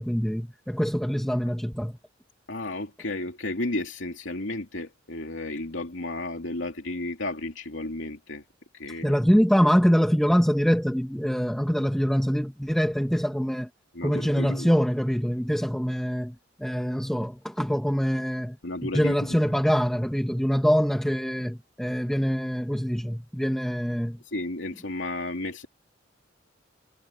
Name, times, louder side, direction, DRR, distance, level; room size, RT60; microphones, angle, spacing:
voice 1, 0.0-2.0 9.0-13.7 14.0-18.6 18.8-24.2, equal, ahead, 1.9 m, -24 dB
voice 2, 2.5-8.4 8.7-9.2 13.9-14.7 18.6-19.5 24.2-25.7, left 2 dB, 75° left, 2.8 m, -33 dB
head